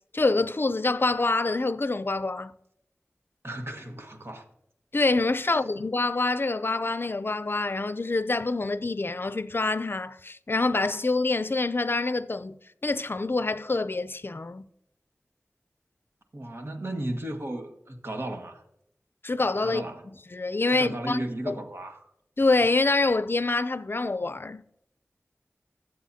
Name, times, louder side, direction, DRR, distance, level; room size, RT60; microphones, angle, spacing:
voice 1, 0.1-2.5 4.9-12.6 12.8-14.7 19.2-19.8 20.3-21.6 22.4-24.6, left 3 dB, 50° left, 0.5 m, -26 dB
voice 2, 3.4-4.4 5.4-5.6 16.3-18.6 19.6-20.1 20.7-22.1, right 1 dB, 55° right, 1.5 m, -35 dB
20.0 x 7.9 x 2.8 m
wide cardioid pair, 60°, 5 cm